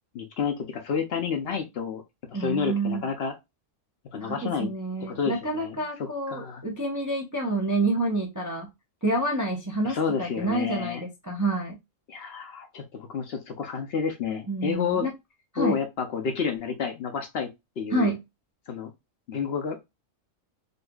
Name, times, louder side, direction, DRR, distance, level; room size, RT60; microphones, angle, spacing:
voice 1, 0.1-2.0 2.4-3.3 4.1-4.7 5.1-5.8 6.3-6.6 9.8-11.0 12.1-15.1 15.6-17.5 17.8-18.1 18.7-18.9 19.3-19.8, left 6 dB, 60° left, 0.7 m, -30 dB
voice 2, 2.3-3.1 4.2-8.7 9.0-11.8 14.5-15.1 15.5-15.8 17.9-18.2, right 2 dB, 25° right, 0.4 m, -28 dB
3.9 x 2.7 x 2.2 m
omnidirectional pair, 1.4 m